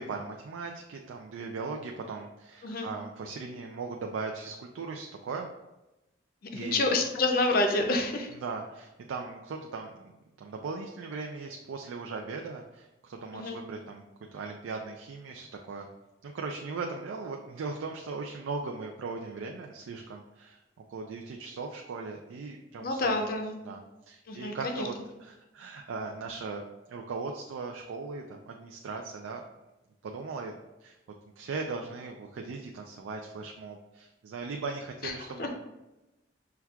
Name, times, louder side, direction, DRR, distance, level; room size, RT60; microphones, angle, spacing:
voice 1, 0.0-5.5 6.5-6.9 8.3-14.0 14.3-15.9 16.2-20.6 20.9-23.3 23.6-26.6 26.9-29.4 30.0-30.5 30.8-31.0 31.4-35.5, right 4 dB, 85° right, 2 dB, 0.3 m, -38 dB
voice 2, 6.5-8.3 13.3-13.6 22.8-23.5 24.3-24.9 35.0-35.1 35.4-35.5, left 2 dB, 50° left, 4 dB, 0.4 m, -28 dB
5.8 x 2.3 x 2.3 m, 0.99 s
head